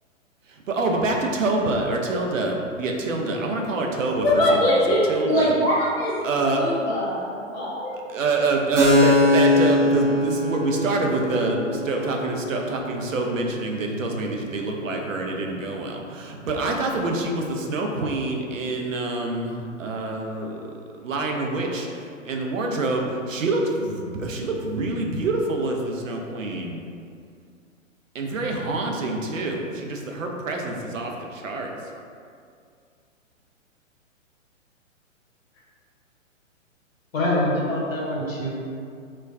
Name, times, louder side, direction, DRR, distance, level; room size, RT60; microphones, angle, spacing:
voice 1, 0.5-5.5 6.2-6.6 8.1-20.6 21.0-26.8 28.1-31.7, right 2 dB, 75° right, 1 dB, 0.5 m, -26 dB
voice 2, 4.2-6.1 6.5-7.9, left 1 dB, 15° left, -8 dB, 0.4 m, -22 dB
Keyboard (musical), 8.8-16.1, left 1 dB, 25° right, 0.7 m, -24 dB
voice 3, 37.1-38.5, left 1 dB, 85° left, -4 dB, 0.9 m, -24 dB
2.2 x 2.2 x 3.5 m, 2.3 s
figure-of-eight pair, 120°, 39 cm